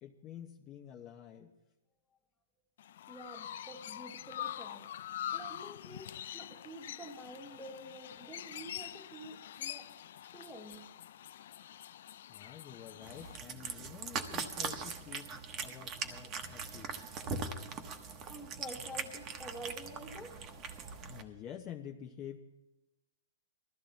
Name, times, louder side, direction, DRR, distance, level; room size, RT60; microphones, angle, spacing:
voice 1, 0.0-1.5 12.3-17.0 21.0-22.4, left 9 dB, 25° left, 2 dB, 0.9 m, -49 dB
Chirp tweet, 2.8-13.4, left 11 dB, 60° left, 0.5 m, -45 dB
voice 2, 3.1-4.9 5.3-9.9 10.3-10.8 18.3-20.4, right 1 dB, 5° left, 1 dB, 1.6 m, -48 dB
Cat, 13.0-21.2, right 5 dB, 25° right, 1.2 m, -41 dB
20.5 x 13.5 x 4.1 m, 0.98 s
hypercardioid pair, 155°, 0 cm